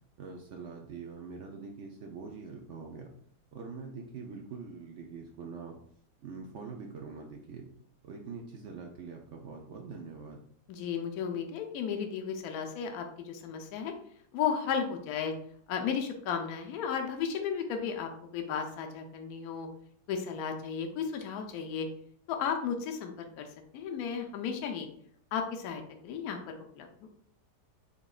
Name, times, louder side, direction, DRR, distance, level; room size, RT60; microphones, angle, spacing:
voice 1, 0.2-3.1 3.5-5.8 6.2-7.6 8.0-10.4, right 5 dB, 65° right, 1 dB, 0.7 m, -44 dB
voice 2, 10.7-13.9 14.3-15.3 15.7-19.7 20.1-21.9 22.3-23.5 23.7-24.9 25.3-26.9, left 7 dB, 70° left, 4 dB, 1.0 m, -34 dB
4.9 x 3.6 x 2.4 m, 0.63 s
omnidirectional pair, 1.7 m